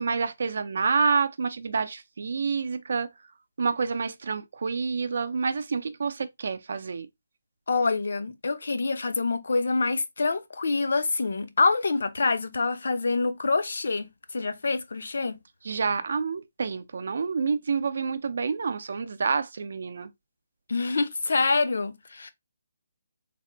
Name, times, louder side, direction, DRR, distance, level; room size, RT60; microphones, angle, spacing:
voice 1, 0.0-3.1 3.6-7.1 15.6-20.1, right 5 dB, 60° right, 0.4 m, -28 dB
voice 2, 7.7-15.4 20.7-22.3, left 3 dB, 70° left, 0.6 m, -26 dB
3.4 x 2.1 x 3.8 m
hypercardioid pair, 170°, 0 cm